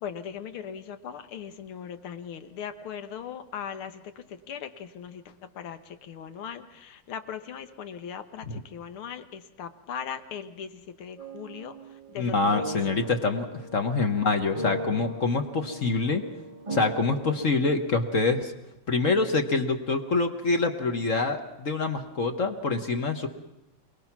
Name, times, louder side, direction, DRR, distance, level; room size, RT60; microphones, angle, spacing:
voice 1, 0.0-13.0, left 8 dB, 80° left, 9 dB, 2.1 m, -39 dB
sound 1, 11.2-17.5, right 1 dB, 40° right, 0.4 m, -38 dB
voice 2, 12.2-13.5 13.7-16.2 16.7-18.5 18.9-23.3, left 3 dB, 45° left, 6 dB, 1.3 m, -25 dB
27.5 x 19.5 x 6.0 m, 0.92 s
omnidirectional pair, 2.3 m